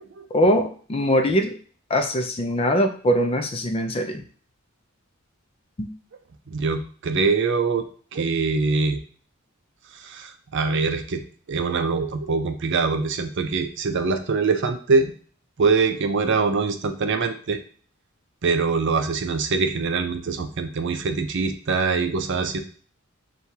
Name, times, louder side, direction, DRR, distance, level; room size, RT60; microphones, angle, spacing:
voice 1, 0.3-1.5 1.9-4.2 5.8-5.9, equal, 25° left, 5 dB, 0.4 m, -22 dB
voice 2, 6.5-7.9 8.1-9.0 9.9-11.2 11.5-15.1 15.6-17.6 18.4-22.6, right 4 dB, 55° right, 7 dB, 0.5 m, -23 dB
6.2 x 2.3 x 2.8 m, 0.43 s
head